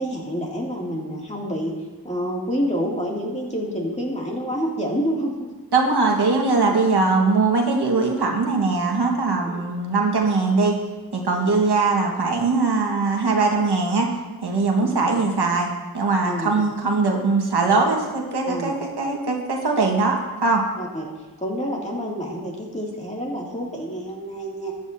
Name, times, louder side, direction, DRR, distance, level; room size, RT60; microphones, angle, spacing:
voice 1, 0.0-1.7 2.0-5.5 6.7-6.8 9.4-9.6 11.3-11.5 14.8-15.0 16.2-16.5 18.5-18.8 20.7-21.1 21.4-24.7, equal, 15° left, -3 dB, 2.4 m, -28 dB
voice 2, 5.7-10.8 11.1-14.1 14.4-15.7 15.9-20.6, right 3 dB, 90° right, 1 dB, 1.6 m, -21 dB
14.0 x 10.0 x 2.7 m, 1.2 s
wide cardioid pair, 80°, 38 cm